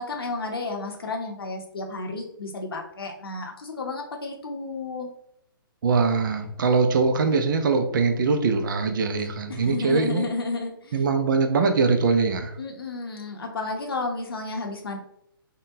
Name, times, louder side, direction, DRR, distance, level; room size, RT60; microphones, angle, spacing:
voice 1, 0.0-5.1 9.5-11.1 12.6-15.0, left 3 dB, 80° left, 2 dB, 0.7 m, -32 dB
voice 2, 5.8-10.3 10.9-12.5, right 4 dB, 60° right, 6 dB, 0.5 m, -22 dB
3.6 x 2.2 x 2.7 m, 0.74 s
hypercardioid pair, 140°, 12 cm